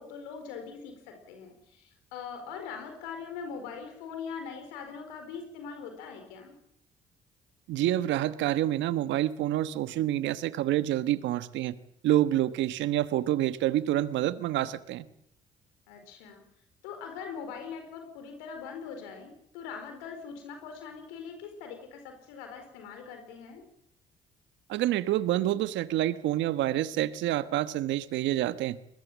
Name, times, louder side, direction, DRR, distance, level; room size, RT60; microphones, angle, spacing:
voice 1, 0.0-6.6 15.9-16.4 16.8-23.6, left 6 dB, 85° left, 5 dB, 4.6 m, -42 dB
voice 2, 7.7-11.7 12.0-15.0 24.7-28.8, right 13 dB, 75° right, 13 dB, 1.3 m, -27 dB
22.5 x 20.5 x 7.4 m, 0.71 s
hypercardioid pair, 55°, 19 cm